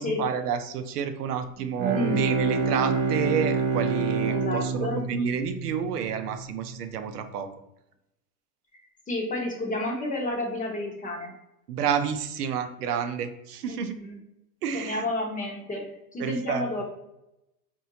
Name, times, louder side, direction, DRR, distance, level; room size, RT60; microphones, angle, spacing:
voice 1, 0.0-7.5 11.7-13.9 14.6-15.0 16.2-16.8, right 7 dB, 90° right, 8 dB, 0.6 m, -30 dB
Bowed string instrument, 1.6-6.3, right 5 dB, 25° right, 0.4 m, -27 dB
voice 2, 4.3-5.0 9.1-11.3 13.7-14.2 14.7-16.8, left 2 dB, 15° left, 0 dB, 0.8 m, -31 dB
4.3 x 2.7 x 2.7 m, 0.87 s
hypercardioid pair, 115°, 45 cm